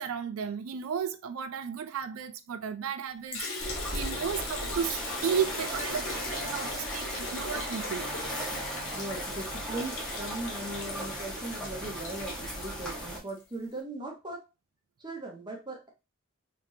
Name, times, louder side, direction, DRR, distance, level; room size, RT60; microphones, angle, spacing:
voice 1, 0.0-8.1, right 7 dB, 90° right, 0.4 m, -34 dB
Liquid, 3.3-13.4, left 3 dB, 75° left, 1.0 m, -40 dB
sound 1, 3.6-13.2, equal, 5° left, 1.1 m, -37 dB
voice 2, 8.9-14.5 15.0-15.9, right 2 dB, 20° right, 0.9 m, -39 dB
3.3 x 3.2 x 2.7 m
head